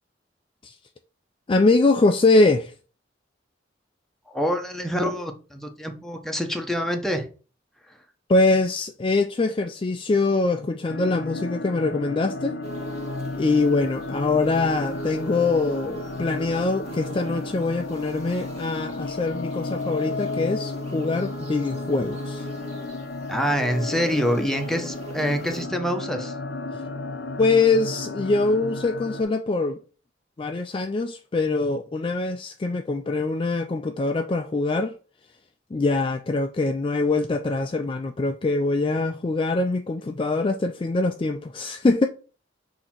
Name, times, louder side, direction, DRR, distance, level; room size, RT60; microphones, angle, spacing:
voice 1, 1.5-2.7 8.3-12.6 13.4-22.5 26.7-26.8 27.4-29.8 30.4-34.9 35.7-42.1, left 3 dB, 30° left, 0.4 m, -23 dB
voice 2, 4.3-7.3 23.3-26.3, equal, ahead, 0.9 m, -26 dB
sound 1, 10.9-29.2, left 2 dB, 65° left, 0.7 m, -33 dB
sound 2, 12.6-25.7, right 4 dB, 35° right, 1.6 m, -43 dB
6.6 x 2.9 x 5.8 m
head